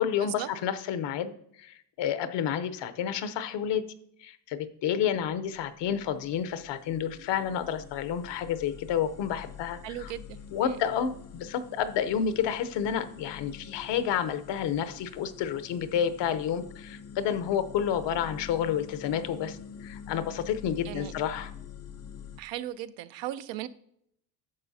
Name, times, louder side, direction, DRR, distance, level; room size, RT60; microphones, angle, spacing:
voice 1, 0.0-1.3 1.6-3.8 4.2-10.1 10.5-21.5, left 8 dB, 75° left, 12 dB, 0.9 m, -30 dB
sound 1, 5.3-22.4, left 7 dB, 35° left, 0.5 m, -47 dB
voice 2, 9.8-10.8 20.8-21.1 22.4-23.7, right 13 dB, 85° right, 12 dB, 0.7 m, -37 dB
10.5 x 6.9 x 2.8 m, 0.71 s
cardioid pair, 105°, 43 cm